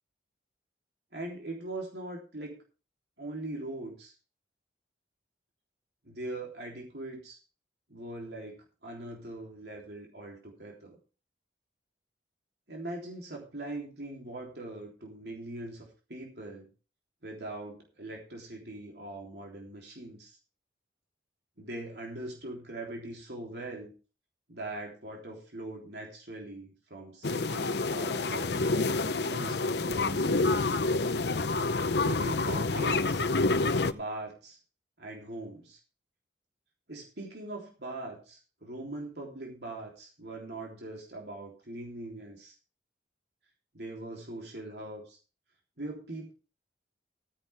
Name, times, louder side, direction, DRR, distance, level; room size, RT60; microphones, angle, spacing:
voice 1, 1.1-2.6 3.2-4.1 6.0-7.4 7.9-11.0 12.7-16.7 17.2-20.4 21.6-23.9 24.5-30.7 32.0-33.3 33.9-34.6 35.0-35.8 36.9-42.6 43.7-45.2 45.8-46.3, right 2 dB, 65° right, 0 dB, 3.5 m, -41 dB
sound 1, 27.2-33.9, left 3 dB, 65° left, 0.8 m, -28 dB
15.5 x 10.0 x 3.5 m, 0.34 s
head